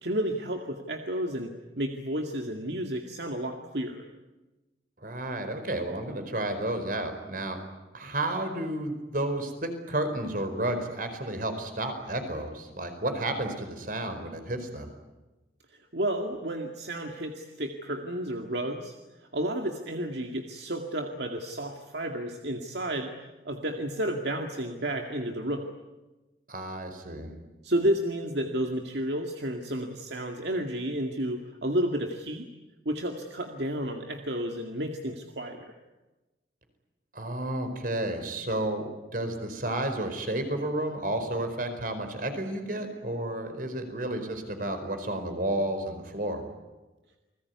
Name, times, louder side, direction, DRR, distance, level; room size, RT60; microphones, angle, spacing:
voice 1, 0.0-4.0 15.7-18.9 19.2-23.1 23.5-25.7 27.6-32.5 32.9-35.7, right 1 dB, 70° right, 3 dB, 2.2 m, -31 dB
voice 2, 5.0-7.6 7.9-14.9 26.5-27.3 37.1-46.4, right 1 dB, 50° right, 7 dB, 4.8 m, -31 dB
29.5 x 21.0 x 9.6 m, 1.1 s
head